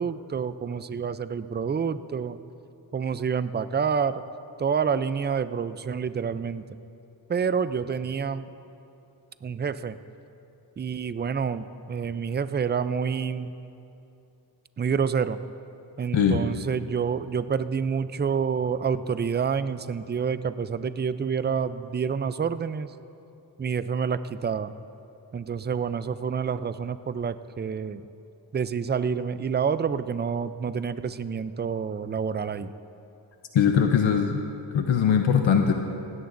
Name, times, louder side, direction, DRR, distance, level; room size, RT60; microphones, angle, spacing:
voice 1, 0.0-2.4 2.9-4.2 4.6-6.7 7.3-8.5 9.4-10.0 10.8-13.5 14.8-15.4 16.0-22.9 23.6-24.7 25.3-28.1 28.5-32.7, right 6 dB, 25° right, 13 dB, 0.4 m, -28 dB
voice 2, 33.5-34.4 34.7-35.7, left 7 dB, 85° left, 4 dB, 0.8 m, -21 dB
17.5 x 16.0 x 2.6 m, 2.8 s
wide cardioid pair, 80°, 45 cm